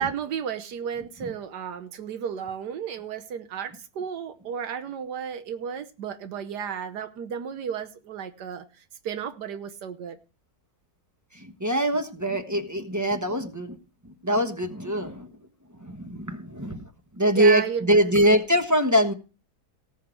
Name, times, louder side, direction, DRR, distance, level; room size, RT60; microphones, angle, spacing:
voice 1, 0.0-8.6 9.0-10.2 17.3-18.1, right 8 dB, 85° right, 1.6 m, -33 dB
voice 2, 11.6-13.7 14.2-15.3 15.8-16.8 17.2-19.1, equal, 15° right, 1.0 m, -23 dB
18.5 x 6.6 x 4.6 m
omnidirectional pair, 1.7 m